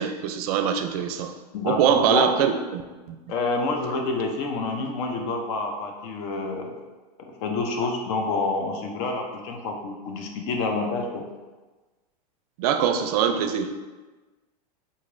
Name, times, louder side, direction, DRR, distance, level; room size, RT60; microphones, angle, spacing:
voice 1, 0.0-1.3 1.7-2.8 3.1-3.2 3.9-4.0 12.6-13.7, right 8 dB, 65° right, 8 dB, 0.4 m, -23 dB
voice 2, 1.5-2.3 3.3-6.8 7.4-11.2, left 3 dB, 55° left, 3 dB, 0.6 m, -28 dB
3.9 x 2.9 x 2.5 m, 1.2 s
hypercardioid pair, 120°, 21 cm